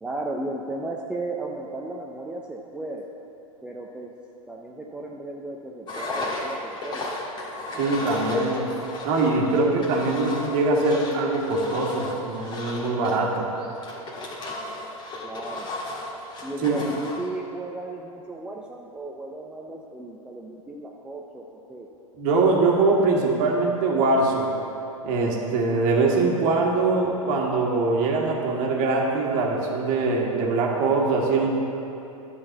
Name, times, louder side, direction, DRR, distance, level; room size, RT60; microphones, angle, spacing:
voice 1, 0.0-3.1 3.6-4.1 4.5-7.1 15.2-15.7 16.4-21.9, right 2 dB, 5° right, -1 dB, 0.4 m, -35 dB
Engine, 5.9-17.3, left 2 dB, 25° left, 1.6 m, -35 dB
voice 2, 7.8-8.7 9.0-13.5 16.6-16.8 22.2-24.5 25.0-31.5, right 3 dB, 40° right, -1 dB, 1.5 m, -22 dB
11.0 x 4.0 x 6.6 m, 2.8 s
figure-of-eight pair, 100°, 19 cm